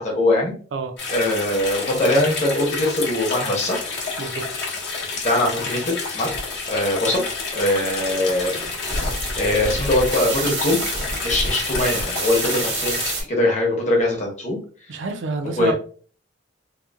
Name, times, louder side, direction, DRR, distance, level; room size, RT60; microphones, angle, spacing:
voice 1, 0.0-0.5 1.1-3.8 5.2-6.4 6.7-7.2 7.5-8.5 8.8-9.0 9.3-10.8 11.2-13.0 13.3-14.6 15.6-15.7, left 1 dB, 40° left, 0.9 m, -21 dB
sound 1, 1.0-13.1, left 4 dB, 70° left, 0.9 m, -29 dB
sound 2, 7.6-13.2, right 2 dB, 90° right, 1.0 m, -29 dB
voice 2, 14.9-15.7, right 4 dB, 75° right, 0.4 m, -27 dB
2.9 x 2.1 x 2.3 m
head